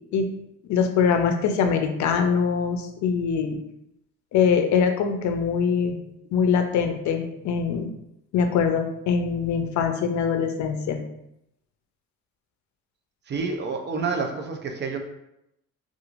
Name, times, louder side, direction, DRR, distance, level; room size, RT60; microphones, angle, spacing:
voice 1, 0.7-3.6 4.3-6.0 6.3-7.9 8.3-11.0, left 6 dB, 70° left, 6 dB, 0.5 m, -23 dB
voice 2, 13.3-15.0, right 4 dB, 35° right, 4 dB, 0.5 m, -28 dB
2.9 x 2.4 x 2.4 m, 0.82 s
cardioid pair, 90°, 30 cm